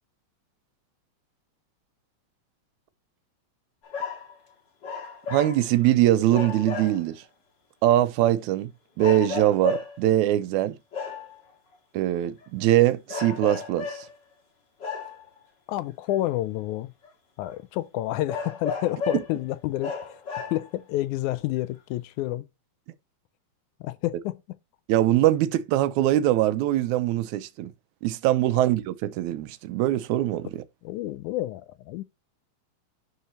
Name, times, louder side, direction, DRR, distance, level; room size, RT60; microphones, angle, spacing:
sound 1, 3.8-4.3 4.8-5.9 6.3-7.2 7.9-8.0 9.0-10.1 10.9-11.4 12.4-12.7 13.1-14.1 14.8-15.4 16.3-16.4 17.0-17.1 17.5-17.6 18.3-19.4 19.8-20.8 21.6-21.7, left 5 dB, 40° left, 2.4 m, -34 dB
voice 1, 5.3-7.2 7.8-8.7 9.0-10.8 11.9-14.1 19.1-19.2 24.9-27.7 28.0-30.6, right 13 dB, 80° right, 2.0 m, -22 dB
voice 2, 15.7-16.9 17.4-22.5 23.8-24.4 30.8-32.0, left 15 dB, 90° left, 2.0 m, -29 dB
11.5 x 4.1 x 3.0 m
omnidirectional pair, 3.5 m